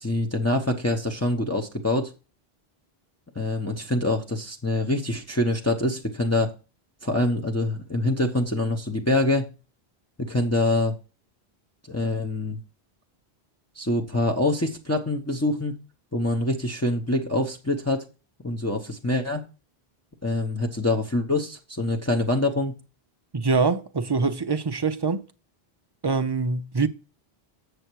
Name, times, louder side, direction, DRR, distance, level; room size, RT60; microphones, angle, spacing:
voice 1, 0.0-2.1 3.3-6.5 7.0-9.5 10.2-10.9 11.9-12.6 13.8-15.7 16.1-18.0 18.4-19.4 20.2-22.7, left 1 dB, 15° left, 0.9 m, -25 dB
voice 2, 23.3-25.2 26.0-26.9, right 4 dB, 35° right, 0.5 m, -24 dB
7.8 x 6.9 x 4.6 m
omnidirectional pair, 1.0 m